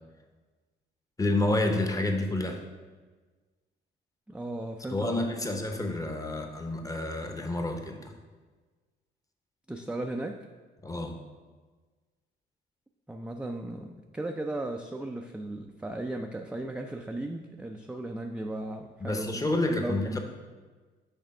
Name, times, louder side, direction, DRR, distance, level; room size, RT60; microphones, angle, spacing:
voice 1, 1.2-2.6 4.9-8.1 10.8-11.2 19.0-20.2, left 2 dB, 15° left, 4 dB, 0.8 m, -29 dB
voice 2, 4.3-5.3 9.7-10.4 13.1-19.4 19.7-20.2, right 1 dB, 5° right, 3 dB, 0.3 m, -36 dB
6.5 x 3.4 x 5.3 m, 1.4 s
cardioid pair, 90°, 20 cm